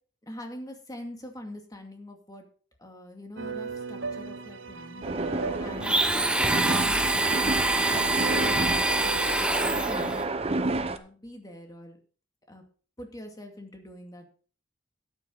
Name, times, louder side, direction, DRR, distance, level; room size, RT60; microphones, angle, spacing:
voice 1, 0.2-2.4 2.8-5.0 5.6-8.0 8.3-10.3 10.7-12.0 12.5-12.6 13.0-14.3, left 1 dB, 20° left, 3 dB, 2.4 m, -44 dB
sound 1, 3.4-9.4, right 4 dB, 90° right, 0.9 m, -37 dB
sound 2, 5.0-11.0, right 2 dB, 30° right, 0.9 m, -31 dB
Domestic sounds home sounds, 5.8-10.2, right 2 dB, 5° right, 0.9 m, -25 dB
13.0 x 9.4 x 4.0 m, 0.40 s
head